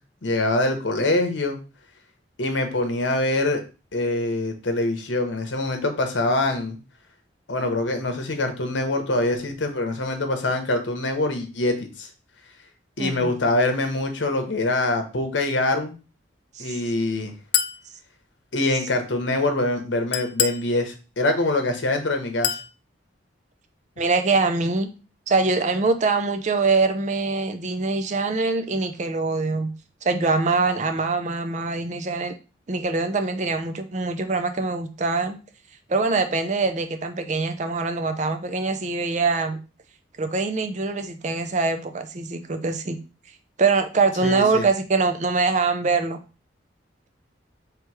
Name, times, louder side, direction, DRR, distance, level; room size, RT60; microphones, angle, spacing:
voice 1, 0.2-1.6 2.4-3.6 3.9-6.8 7.5-12.1 13.0-16.0 16.6-17.3 18.5-22.6 44.2-44.6, left 2 dB, 70° left, 5 dB, 0.9 m, -24 dB
voice 2, 13.0-13.3 16.5-16.8 24.0-24.9 25.3-29.7 30.0-32.3 32.7-35.4 35.9-39.6 40.2-43.0 43.6-46.2, right 3 dB, 35° right, 7 dB, 0.4 m, -23 dB
Chink clink, 17.5-17.8 20.1-20.7 22.4-22.7, left 10 dB, 55° left, 0.3 m, -24 dB
3.3 x 3.0 x 4.7 m, 0.33 s
head